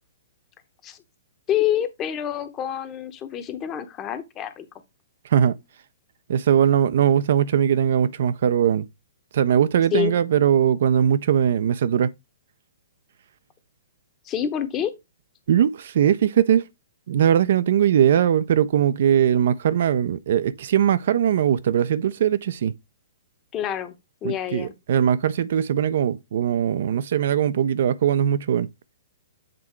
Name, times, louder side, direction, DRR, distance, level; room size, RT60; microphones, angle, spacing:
voice 1, 1.5-4.6 9.9-10.2 14.2-14.9 23.5-23.9 24.2-24.7, left 10 dB, 25° left, 0.9 m, -27 dB
voice 2, 6.3-8.8 9.3-12.1 15.5-16.7 17.1-22.7 24.2-28.7, right 9 dB, 60° right, 0.5 m, -20 dB
7.5 x 2.8 x 4.5 m
hypercardioid pair, 125°, 0 cm